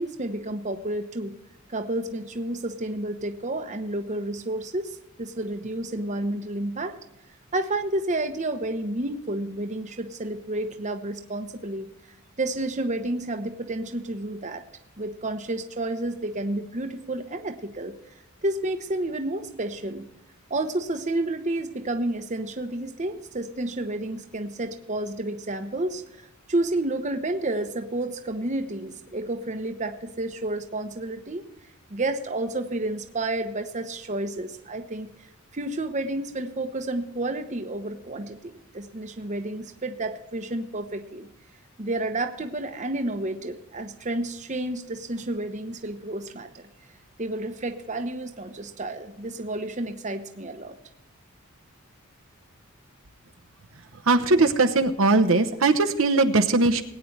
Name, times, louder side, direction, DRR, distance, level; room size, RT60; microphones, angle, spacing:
voice 1, 0.0-1.3 1.7-7.0 7.5-11.9 12.4-14.6 15.0-17.9 18.4-20.1 20.5-26.2 26.5-31.4 31.9-35.1 35.5-41.3 41.8-46.7 47.2-50.7, right 2 dB, 35° right, 7 dB, 0.9 m, -30 dB
voice 2, 54.1-56.8, right 3 dB, 70° right, 8 dB, 0.9 m, -20 dB
20.0 x 9.3 x 3.3 m, 0.89 s
head